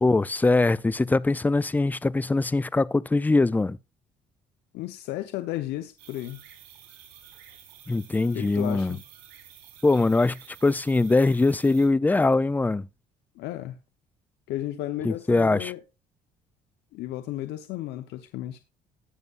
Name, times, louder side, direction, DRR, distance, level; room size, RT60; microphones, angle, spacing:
voice 1, 0.0-3.8 7.9-9.0 9.8-12.9 15.0-15.7, left 3 dB, 10° left, 0.4 m, -22 dB
voice 2, 4.7-6.4 8.3-9.0 13.4-13.8 14.5-15.8 16.9-18.6, left 14 dB, 85° left, 0.9 m, -33 dB
sound 1, 6.0-11.9, right 10 dB, 85° right, 4.3 m, -50 dB
18.5 x 6.8 x 2.5 m
cardioid pair, 110°, 17 cm